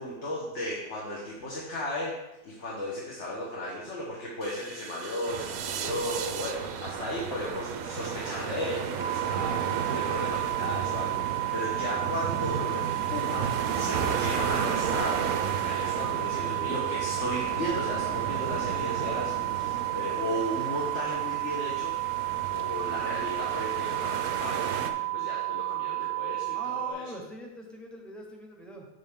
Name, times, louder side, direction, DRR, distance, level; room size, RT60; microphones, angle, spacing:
voice 1, 0.0-2.1 2.4-15.2 15.6-22.0 22.5-27.0, left 1 dB, 45° left, -5 dB, 1.7 m, -35 dB
sound 1, 4.4-8.5, right 9 dB, 85° right, 0.5 m, -39 dB
sound 2, 5.2-24.9, right 6 dB, 70° right, 1.1 m, -34 dB
sound 3, 9.0-26.9, right 23 dB, 75° left, 2.9 m, -32 dB
voice 2, 26.5-28.9, equal, ahead, -1 dB, 1.0 m, -42 dB
7.5 x 7.4 x 3.6 m, 0.99 s
omnidirectional pair, 1.7 m